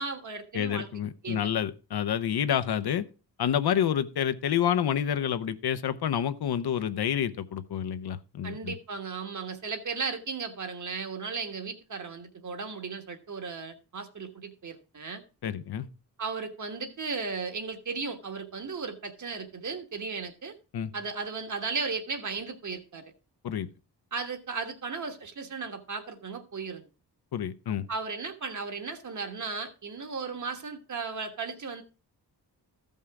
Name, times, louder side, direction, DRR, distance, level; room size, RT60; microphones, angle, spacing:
voice 1, 0.0-0.9 1.2-1.5 8.4-15.2 16.2-20.5 20.9-23.1 24.1-26.9 27.9-31.8, right 4 dB, 45° right, 1.4 m, -35 dB
voice 2, 0.5-3.0 3.4-8.7 15.4-15.9 20.7-20.9 23.4-23.7 27.3-27.8, left 9 dB, 70° left, 0.7 m, -28 dB
14.0 x 5.5 x 4.7 m
wide cardioid pair, 145°, 40 cm